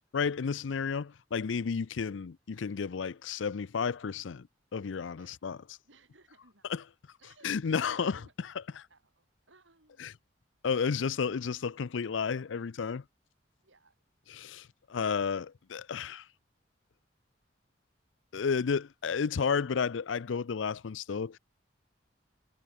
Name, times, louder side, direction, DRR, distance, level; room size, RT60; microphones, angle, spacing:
voice 1, 0.1-4.5 4.7-5.6 6.7-6.8 7.4-8.5 8.8-8.9 10.0-10.1 10.6-13.0 14.3-16.3 18.3-21.4, left 6 dB, 85° left, 0.5 m, -32 dB
voice 2, 5.8-6.7 7.2-7.6 7.9-8.3 8.9-10.3 13.6-13.9, right 3 dB, 90° right, 6.6 m, -63 dB
head